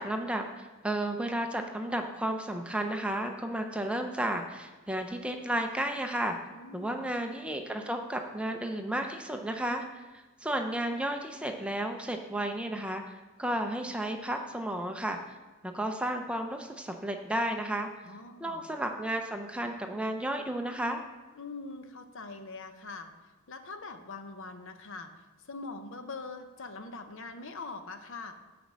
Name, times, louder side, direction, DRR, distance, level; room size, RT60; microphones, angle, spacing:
voice 1, 0.0-6.4 6.7-15.4 15.6-17.9 18.4-21.0, right 1 dB, 5° right, 4 dB, 0.4 m, -33 dB
voice 2, 6.5-7.1 18.0-18.7 21.3-23.1 23.5-25.1 25.5-28.3, left 3 dB, 60° left, 8 dB, 0.7 m, -43 dB
7.2 x 5.1 x 7.3 m, 1.2 s
head